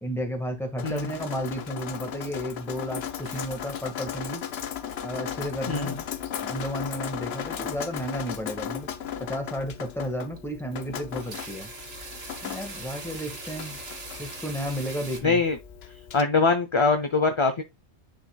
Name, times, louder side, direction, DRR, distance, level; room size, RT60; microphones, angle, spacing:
voice 1, 0.0-4.5 5.0-6.0 6.4-8.9 9.2-11.7 12.4-13.8 14.2-15.4, equal, ahead, 1.5 m, -33 dB
Drip, 0.8-16.2, left 8 dB, 65° left, 0.9 m, -36 dB
sound 1, 3.2-4.1 4.4-4.9 5.3-5.9 6.3-6.4 7.2-7.7 8.0-8.2 8.7-8.8 9.2-9.3 9.8-9.9 10.4-10.6 10.9-15.2, right 2 dB, 60° right, 2.0 m, -41 dB
voice 2, 15.2-15.6 16.1-17.6, left 4 dB, 35° left, 0.6 m, -23 dB
10.5 x 4.0 x 2.3 m
omnidirectional pair, 1.2 m